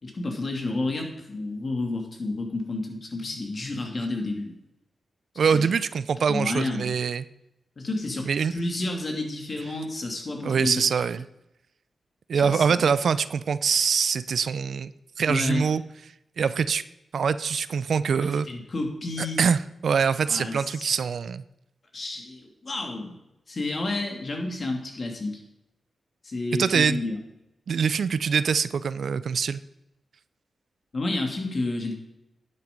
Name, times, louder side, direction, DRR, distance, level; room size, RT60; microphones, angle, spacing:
voice 1, 0.0-4.5 5.4-5.7 6.3-7.0 7.8-10.8 12.3-12.8 15.3-15.7 18.5-19.4 20.3-20.9 21.9-23.2 23.5-25.4 26.2-27.2 30.9-31.9, left 2 dB, 50° left, 2 dB, 2.8 m, -30 dB
voice 2, 5.4-7.2 8.3-8.5 10.4-11.2 12.3-14.9 15.2-15.8 16.4-16.8 17.1-18.5 19.4-21.4 26.6-27.0 27.7-29.6, right 6 dB, 75° right, 15 dB, 0.5 m, -24 dB
11.0 x 9.0 x 5.3 m, 0.87 s
cardioid pair, 65°, 0 cm